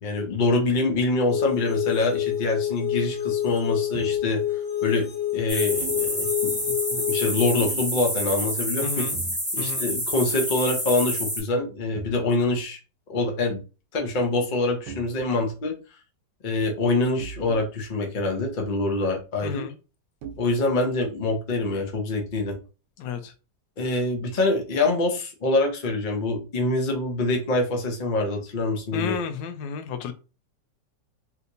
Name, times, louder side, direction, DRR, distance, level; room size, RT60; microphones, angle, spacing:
voice 1, 0.0-4.4 4.8-9.0 9.5-12.8 13.1-13.6 13.9-15.7 16.4-19.6 20.4-22.6 23.8-29.1, left 2 dB, 50° left, 2 dB, 0.6 m, -25 dB
sound 1, 1.3-7.5, left 11 dB, 65° left, 1.0 m, -27 dB
sound 2, 3.9-4.2 5.8-6.1 7.6-7.9 9.1-9.4 9.7-10.0 10.4-10.5 11.9-12.2 14.9-15.5 17.2-17.6 18.6-18.7 20.2-20.4, right 6 dB, 85° right, 1.3 m, -39 dB
sound 3, 5.5-11.4, equal, 10° left, 1.0 m, -28 dB
voice 2, 8.8-9.2 9.6-9.9 19.4-19.8 23.0-23.3 28.9-30.1, left 6 dB, 85° left, 9 dB, 1.3 m, -32 dB
3.3 x 2.9 x 2.6 m, 0.32 s
omnidirectional pair, 1.9 m